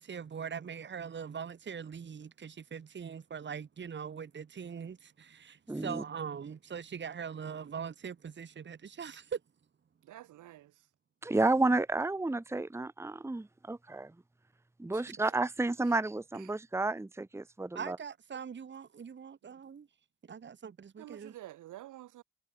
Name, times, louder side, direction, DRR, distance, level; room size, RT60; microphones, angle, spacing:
voice 1, 0.0-9.4 17.8-19.9 20.3-21.3, right 7 dB, 40° right, 1.7 m, -42 dB
voice 2, 5.7-6.0 11.2-14.1 14.8-18.0, right 2 dB, 10° right, 1.1 m, -31 dB
voice 3, 10.0-10.9 14.9-15.1 15.8-16.0 16.3-16.5 19.4-19.6 21.0-22.2, right 14 dB, 85° right, 3.9 m, -50 dB
cardioid pair, 90°, 30 cm